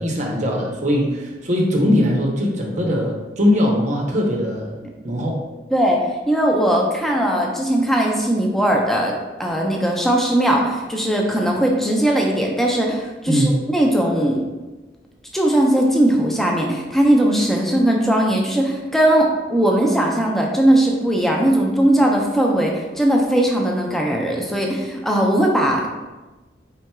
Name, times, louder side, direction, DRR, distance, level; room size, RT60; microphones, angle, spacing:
voice 1, 0.0-4.7 5.0-5.4 13.3-13.5, equal, 40° right, -1 dB, 0.7 m, -20 dB
voice 2, 5.7-14.4 15.3-26.0, right 1 dB, ahead, -1 dB, 0.4 m, -19 dB
4.3 x 3.6 x 2.2 m, 1.2 s
head